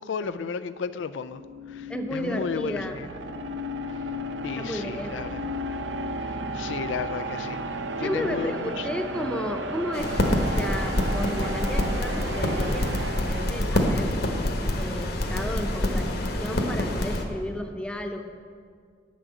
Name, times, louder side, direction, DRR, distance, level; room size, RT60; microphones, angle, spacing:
voice 1, 0.0-1.4 1.7-2.8 4.4-5.3 6.5-7.6 8.0-8.9, left 6 dB, 80° left, 13 dB, 0.4 m, -33 dB
sound 1, 1.2-14.3, right 1 dB, 75° right, 0.7 m, -34 dB
voice 2, 1.9-3.0 4.6-5.4 8.0-10.1 10.4-14.1 14.7-18.2, left 1 dB, 5° left, 4 dB, 0.7 m, -33 dB
sound 2, 9.9-17.2, left 1 dB, 55° left, 1.2 m, -26 dB
10.5 x 6.2 x 7.9 m, 2.1 s
head